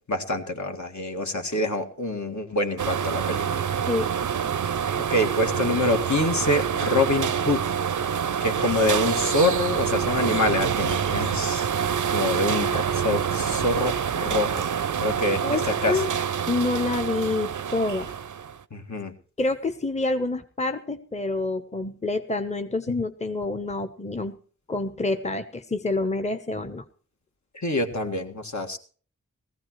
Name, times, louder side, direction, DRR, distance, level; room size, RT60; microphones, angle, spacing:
voice 1, 0.1-3.7 5.1-7.6 8.4-11.7 12.1-14.7 15.0-16.0 18.7-19.1 27.5-28.8, left 1 dB, 65° left, 3 dB, 1.9 m, -26 dB
sound 1, 2.8-18.6, right 8 dB, 70° right, 0.5 m, -26 dB
voice 2, 15.4-16.1 16.5-18.1 19.4-24.4 24.7-26.8, left 2 dB, 20° left, 8 dB, 0.9 m, -27 dB
18.0 x 15.5 x 3.1 m, 0.41 s
wide cardioid pair, 55°, 31 cm